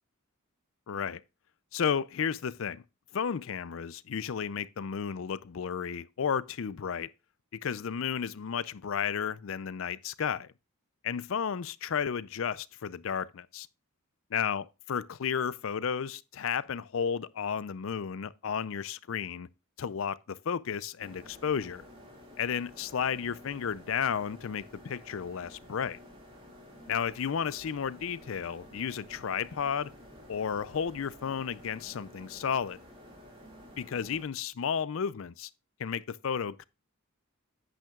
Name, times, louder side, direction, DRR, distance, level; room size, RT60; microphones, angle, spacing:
voice 1, 0.9-1.2 1.7-2.8 3.1-7.1 7.5-10.5 11.0-13.7 14.3-19.5 19.8-21.8 22.4-26.0 26.9-29.9 30.3-32.8 33.8-35.5 35.8-36.7, left 7 dB, 65° left, 0.4 m, -33 dB
sound 1, 21.0-34.2, left 1 dB, 25° right, 2.2 m, -52 dB
10.5 x 9.1 x 2.3 m
head